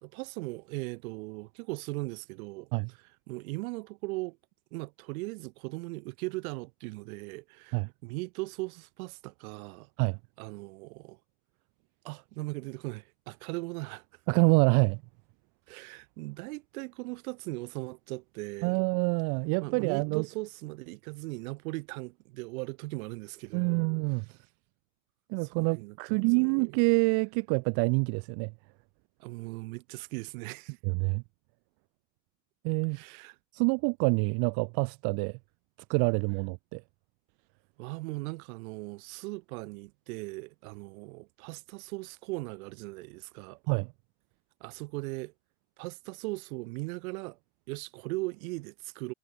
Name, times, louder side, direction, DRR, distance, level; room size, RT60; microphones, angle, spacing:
voice 1, 0.0-3.0 3.3-4.4 4.7-9.9 10.4-11.2 12.0-14.0 15.7-18.8 19.6-23.9 25.4-26.5 29.2-30.8 32.9-33.3 37.8-43.6 44.6-45.3 45.8-47.4 47.7-49.1, right 25 dB, 80° right, 1.2 m, -39 dB
voice 2, 14.3-15.0 18.6-20.2 23.5-24.3 25.3-28.5 30.8-31.2 32.6-33.0 33.5-35.4 35.9-36.8 43.7-43.9, right 36 dB, 65° right, 0.6 m, -26 dB
supercardioid pair, 90°, 42 cm